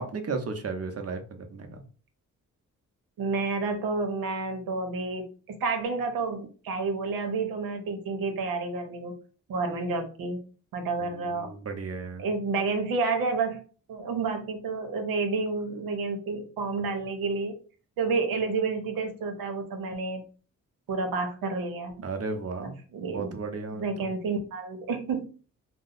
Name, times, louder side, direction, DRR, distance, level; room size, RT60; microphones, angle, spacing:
voice 1, 0.0-1.8 11.0-12.3 22.0-24.1, right 4 dB, 45° right, 6 dB, 0.7 m, -35 dB
voice 2, 3.2-9.1 9.5-10.4 10.7-11.5 12.2-13.6 13.9-17.6 18.0-20.2 20.9-21.9 22.6-23.3 23.7-25.2, right 4 dB, 80° right, 6 dB, 0.8 m, -30 dB
2.7 x 2.1 x 4.0 m, 0.39 s
supercardioid pair, 55°, 35 cm